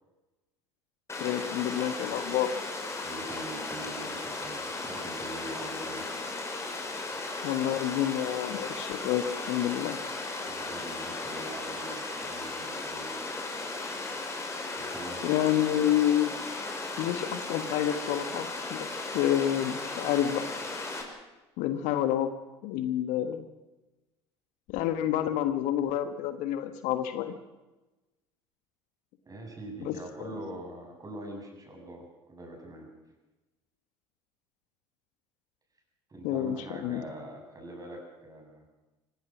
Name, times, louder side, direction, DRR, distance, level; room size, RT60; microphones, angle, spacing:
Water, 1.1-21.0, left 3 dB, 20° left, 5.3 m, -36 dB
voice 1, 1.2-2.5 7.4-10.0 15.2-16.3 17.0-18.9 19.1-20.4 21.6-22.3 22.6-23.5 24.7-27.3 29.8-29.9 30.2-30.3 36.2-37.0, left 11 dB, 60° left, 10 dB, 1.5 m, -28 dB
voice 2, 3.0-6.1 10.4-13.2 14.7-15.3 29.2-32.9 36.1-38.6, right 1 dB, 25° right, 2 dB, 8.0 m, -43 dB
25.5 x 17.5 x 6.2 m, 1.1 s
figure-of-eight pair, 65°, 15 cm